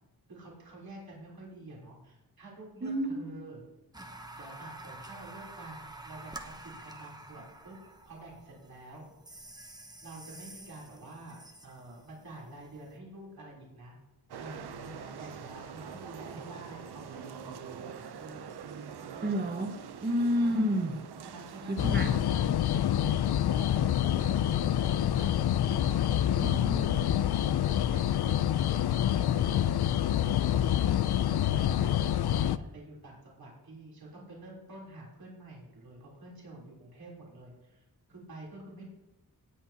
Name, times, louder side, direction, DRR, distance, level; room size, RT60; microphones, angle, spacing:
voice 1, 0.3-3.6 4.3-7.8 8.0-9.0 10.0-13.9 14.4-19.5 20.4-20.8 21.3-26.5 27.2-28.4 28.7-30.7 31.0-38.8, right 2 dB, 65° right, -4 dB, 3.7 m, -49 dB
voice 2, 2.8-3.3 19.2-21.0 21.7-22.1 26.4-27.3, equal, 25° right, 4 dB, 1.5 m, -30 dB
sound 1, 3.9-13.0, right 2 dB, 10° right, 0.9 m, -49 dB
sound 2, 14.3-22.2, right 7 dB, 80° right, 0.8 m, -44 dB
sound 3, 21.8-32.6, left 11 dB, 80° left, 0.5 m, -27 dB
18.5 x 8.1 x 2.9 m, 1.0 s
wide cardioid pair, 145°, 39 cm